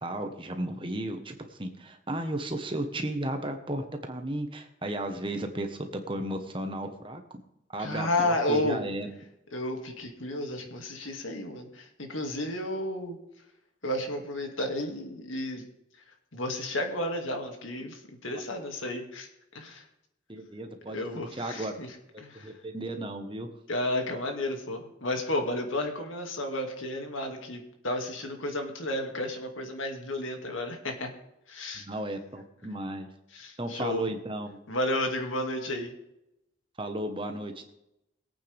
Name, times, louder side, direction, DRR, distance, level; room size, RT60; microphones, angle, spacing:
voice 1, 0.0-7.2 7.7-9.1 20.3-21.0 21.3-21.8 22.1-23.5 31.8-33.1 33.6-34.6 36.8-37.7, right 1 dB, 25° right, 5 dB, 1.3 m, -34 dB
voice 2, 7.8-8.9 9.5-13.2 13.8-15.6 16.3-19.3 19.5-19.8 20.9-21.9 22.2-22.5 23.7-31.1 31.5-31.8 33.3-34.1 34.7-35.9, left 1 dB, 85° left, 3 dB, 2.4 m, -32 dB
21.5 x 8.8 x 3.5 m, 0.86 s
head